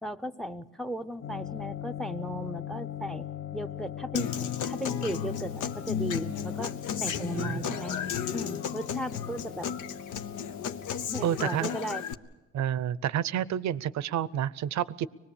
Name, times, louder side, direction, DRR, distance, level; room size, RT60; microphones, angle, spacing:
voice 1, 0.0-3.3 3.5-4.4 4.7-6.7 7.0-8.0 8.3-9.7 11.1-12.0, equal, ahead, 13 dB, 0.7 m, -36 dB
sound 1, 1.2-11.1, left 10 dB, 35° left, 0.7 m, -40 dB
Human voice / Acoustic guitar, 4.1-12.1, left 8 dB, 80° left, 0.9 m, -34 dB
voice 2, 7.4-7.7 11.2-11.7 12.5-15.1, right 10 dB, 65° right, 19 dB, 0.7 m, -29 dB
24.5 x 20.0 x 7.1 m, 1.1 s
cardioid pair, 90°, 30 cm